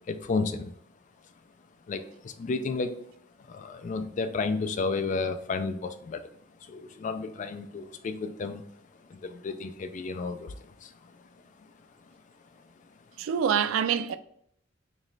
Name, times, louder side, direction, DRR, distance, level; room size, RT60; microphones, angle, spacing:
voice 1, 0.1-0.7 1.9-3.0 3.5-6.2 6.7-8.6 9.1-10.5 10.8-10.9, left 4 dB, 40° left, 0.3 m, -32 dB
voice 2, 13.2-14.2, right 8 dB, 85° right, 0.3 m, -25 dB
3.1 x 3.1 x 3.8 m
head